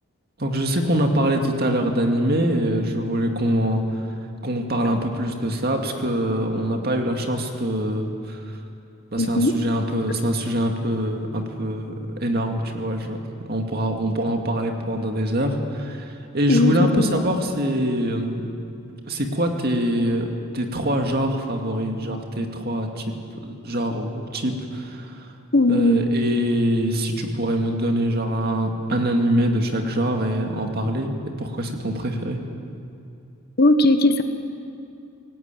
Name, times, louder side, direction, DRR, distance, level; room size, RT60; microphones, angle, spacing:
voice 1, 0.4-4.1 4.4-8.6 9.1-18.4 19.1-23.1 23.4-25.3 25.7-32.4, equal, 45° right, 3 dB, 2.3 m, -24 dB
voice 2, 9.2-9.5 16.5-17.2 25.5-26.0 33.6-34.2, left 2 dB, 45° left, 8 dB, 1.2 m, -18 dB
24.0 x 18.0 x 9.2 m, 2.5 s
head